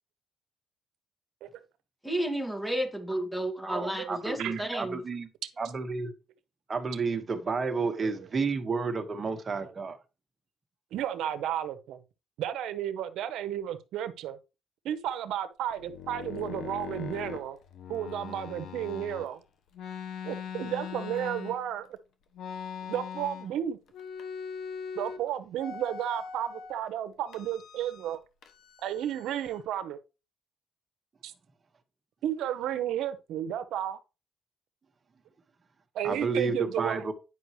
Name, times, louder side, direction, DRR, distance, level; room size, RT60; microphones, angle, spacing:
voice 1, 2.0-5.0, right 1 dB, 5° left, 1.9 m, -32 dB
voice 2, 3.6-5.3 5.6-6.1 6.7-10.0 36.0-37.1, right 4 dB, 35° right, 1.5 m, -31 dB
voice 3, 10.9-12.0 12.4-14.4 14.8-17.6 17.9-19.4 20.2-21.9 22.9-23.8 24.9-28.2 28.8-30.0 31.2-31.3 32.2-34.0 35.9-37.0, right 11 dB, 85° right, 0.9 m, -33 dB
sound 1, 15.7-19.3 19.7-21.9 22.3-23.6 23.9-25.2 25.6-26.7 27.3-28.2 28.4-29.6, left 7 dB, 75° left, 1.1 m, -41 dB
9.7 x 5.5 x 3.2 m
cardioid pair, 90°, 0 cm